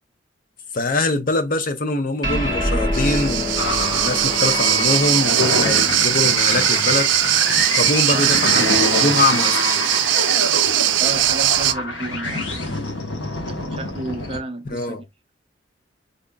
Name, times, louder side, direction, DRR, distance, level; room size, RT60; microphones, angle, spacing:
voice 1, 0.7-7.2 7.8-9.6 14.7-15.0, left 2 dB, 50° left, 0.7 m, -23 dB
sound 1, 2.2-9.0, left 1 dB, 20° left, 1.3 m, -28 dB
sound 2, 2.9-11.7, right 13 dB, 85° right, 0.5 m, -20 dB
sound 3, 3.6-14.4, left 2 dB, 80° left, 1.3 m, -26 dB
voice 2, 8.1-8.4 11.0-12.5 13.7-15.0, right 2 dB, 30° right, 0.7 m, -31 dB
5.1 x 2.8 x 2.3 m
head